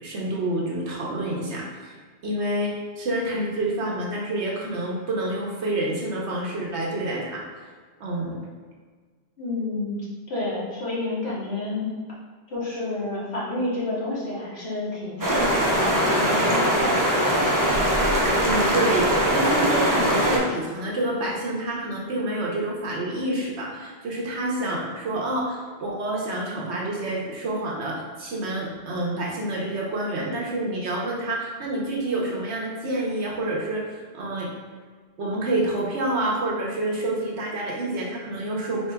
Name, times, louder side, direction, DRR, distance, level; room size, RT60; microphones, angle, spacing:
voice 1, 0.0-1.9 2.2-7.5 8.0-8.4 18.4-34.5 35.2-38.9, right 1 dB, 90° right, -2 dB, 1.2 m, -28 dB
voice 2, 9.4-10.0 10.3-12.0 12.5-17.4, left 2 dB, 70° left, -7 dB, 1.4 m, -29 dB
sound 1, 15.2-20.4, equal, 25° right, 0.5 m, -21 dB
4.2 x 4.0 x 2.3 m, 1.5 s
omnidirectional pair, 1.1 m